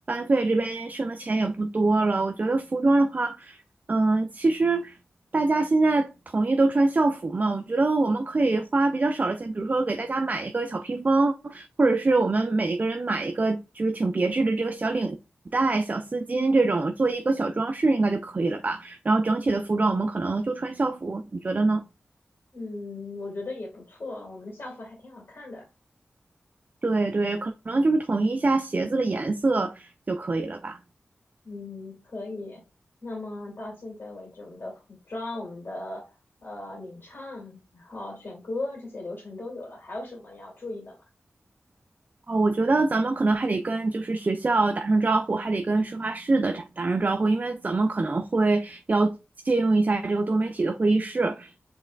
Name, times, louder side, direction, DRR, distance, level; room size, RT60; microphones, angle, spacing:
voice 1, 0.1-3.6 3.9-5.0 5.3-15.2 15.5-21.9 26.8-30.8 42.3-49.2 49.4-51.6, right 3 dB, 40° right, 0.4 m, -24 dB
voice 2, 22.5-25.6 31.4-32.6 33.0-36.1 36.4-41.0, left 2 dB, 60° left, 2.1 m, -38 dB
5.3 x 3.3 x 2.3 m
cardioid pair, 45°, 4 cm